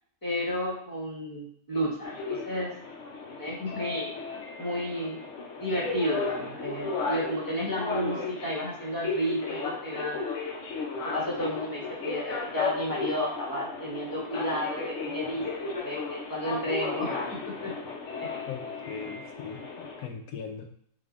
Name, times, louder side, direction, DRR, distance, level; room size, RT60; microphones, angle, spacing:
voice 1, 0.2-2.7 3.4-4.1 4.6-5.2 5.6-10.3 11.0-15.4 15.7-17.7 18.2-18.3, equal, 15° left, -5 dB, 1.0 m, -32 dB
sound 1, 2.0-20.0, left 4 dB, 60° left, 0.9 m, -35 dB
voice 2, 18.5-19.6 20.0-20.8, left 6 dB, 85° left, 4 dB, 1.2 m, -39 dB
4.0 x 3.8 x 2.4 m, 0.66 s
omnidirectional pair, 1.7 m